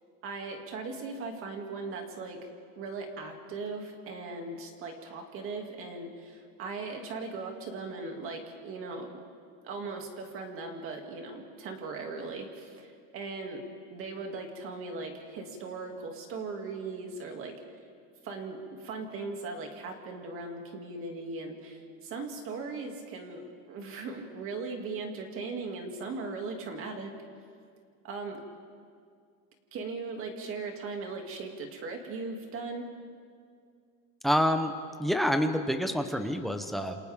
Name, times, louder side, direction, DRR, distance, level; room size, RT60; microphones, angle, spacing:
voice 1, 0.2-2.5 2.8-9.1 9.6-17.6 18.2-27.1 28.0-28.4 29.7-32.9, right 3 dB, 35° right, 3 dB, 2.5 m, -38 dB
voice 2, 34.2-34.7 35.0-37.0, equal, ahead, 7 dB, 0.7 m, -27 dB
28.5 x 28.0 x 3.6 m, 2.2 s
cardioid pair, 175°, 38 cm